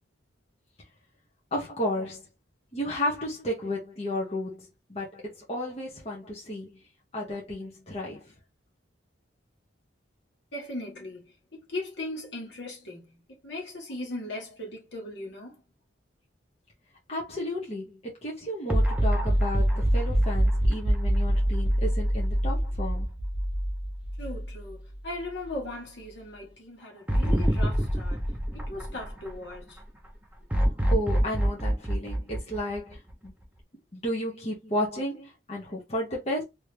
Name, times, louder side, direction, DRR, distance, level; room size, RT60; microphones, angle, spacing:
voice 1, 1.5-2.2 2.7-5.2 5.5-6.8 7.1-8.2 17.1-23.1 30.9-33.3 33.9-36.4, left 1 dB, 35° left, 1.0 m, -33 dB
voice 2, 10.5-15.5 24.2-28.3 28.5-29.8, left 1 dB, 65° left, 1.5 m, -38 dB
sound 1, 18.7-25.0 25.4-25.5 27.1-29.6 30.5-33.3, equal, 10° right, 0.6 m, -25 dB
3.1 x 2.9 x 3.2 m
head